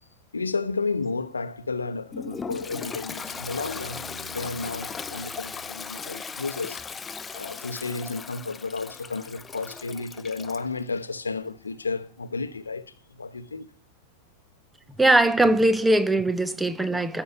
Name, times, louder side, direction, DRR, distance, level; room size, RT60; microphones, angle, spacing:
voice 1, 0.3-4.1 4.3-6.8 7.3-13.7, left 4 dB, 75° left, 1.0 m, -32 dB
Toilet flush, 2.1-10.7, left 5 dB, 15° left, 0.6 m, -38 dB
sound 1, 2.3-6.3 8.7-8.8, equal, 65° right, 2.5 m, -48 dB
voice 2, 15.0-17.2, right 1 dB, 5° right, 1.1 m, -20 dB
14.5 x 6.5 x 9.0 m
figure-of-eight pair, 90°, 0 cm